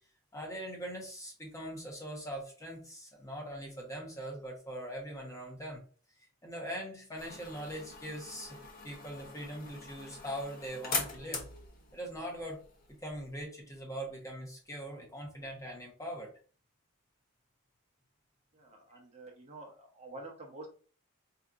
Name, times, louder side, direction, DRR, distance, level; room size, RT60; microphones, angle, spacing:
voice 1, 0.3-5.8 6.4-8.6 8.8-11.4 11.9-12.6 13.0-16.3, equal, 15° left, -1 dB, 0.9 m, -41 dB
sound 1, 7.1-13.5, left 3 dB, 40° left, 1.0 m, -42 dB
voice 2, 18.5-20.7, right 2 dB, 30° right, 0 dB, 0.9 m, -48 dB
4.9 x 2.8 x 2.4 m, 0.39 s
head